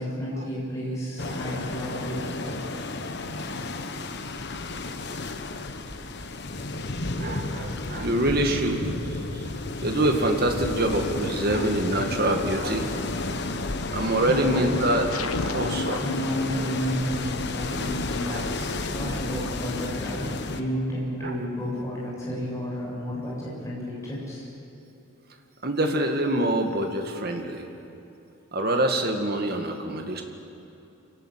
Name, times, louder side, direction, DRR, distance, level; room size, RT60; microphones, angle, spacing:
voice 1, 0.0-2.7 14.2-14.9 15.9-24.5, equal, 15° left, -6 dB, 7.2 m, -31 dB
sound 1, 1.2-20.6, left 2 dB, 50° left, 1.1 m, -32 dB
voice 2, 7.2-9.4 9.8-12.9 13.9-16.1 18.3-18.5 19.0-19.2 21.2-21.4 25.6-27.7 28.5-30.2, right 1 dB, 45° right, 3 dB, 2.0 m, -26 dB
sound 2, 15.1-20.5, left 3 dB, 85° left, 1.1 m, -35 dB
25.5 x 18.0 x 7.7 m, 2.9 s
head